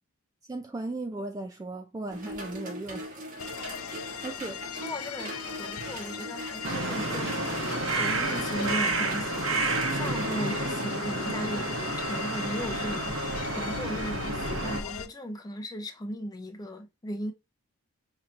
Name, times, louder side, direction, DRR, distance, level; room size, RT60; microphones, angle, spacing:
voice 1, 0.5-3.1 4.2-4.6, right 2 dB, 15° right, 0.3 m, -36 dB
sound 1, 2.1-10.5, right 1 dB, 40° right, 1.1 m, -41 dB
sound 2, 3.4-15.1, left 7 dB, 80° left, 0.5 m, -39 dB
voice 2, 4.7-9.5 9.9-11.7 12.0-17.3, equal, 20° left, 0.7 m, -37 dB
sound 3, 6.6-14.8, right 2 dB, 65° right, 1.0 m, -30 dB
5.5 x 2.9 x 2.4 m
head